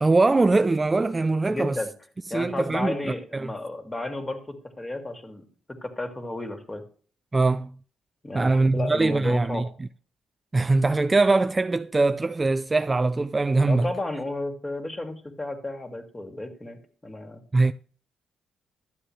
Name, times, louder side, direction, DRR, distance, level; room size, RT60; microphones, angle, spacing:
voice 1, 0.0-1.8 2.3-3.5 7.3-7.7 8.3-9.9 10.5-13.9 17.5-17.7, right 3 dB, 20° right, 0.4 m, -22 dB
voice 2, 1.5-1.9 2.3-6.8 8.2-9.7 13.6-17.4, left 2 dB, 20° left, 2.3 m, -33 dB
11.5 x 7.5 x 3.2 m
cardioid pair, 90°, 0 cm